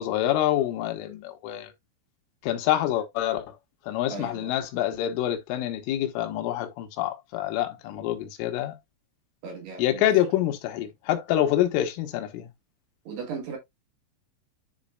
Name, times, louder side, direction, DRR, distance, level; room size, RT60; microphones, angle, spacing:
voice 1, 0.0-1.7 2.4-3.6 3.8-8.8 9.8-12.5, left 12 dB, 90° left, 3.6 m, -26 dB
voice 2, 4.1-4.5 9.4-10.1 13.1-13.6, right 5 dB, 60° right, 3.7 m, -36 dB
11.0 x 4.2 x 2.4 m
omnidirectional pair, 5.6 m